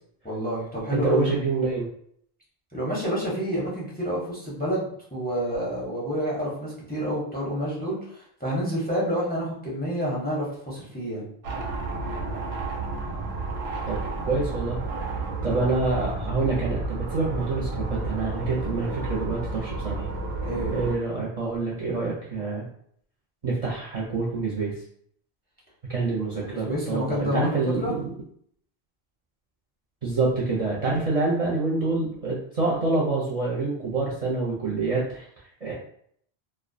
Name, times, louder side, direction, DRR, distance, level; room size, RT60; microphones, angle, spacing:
voice 1, 0.2-1.3 2.7-11.3 20.4-20.8 26.3-27.9, equal, 10° left, -5 dB, 0.6 m, -29 dB
voice 2, 0.9-1.9 13.9-14.0 14.2-14.8 15.4-20.1 20.7-22.7 23.4-24.8 25.9-28.0 30.0-35.2 35.6-35.7, right 3 dB, 45° right, -6 dB, 0.6 m, -26 dB
sound 1, 11.4-21.0, right 3 dB, 85° right, 0.8 m, -31 dB
2.3 x 2.2 x 2.5 m, 0.64 s
omnidirectional pair, 1.0 m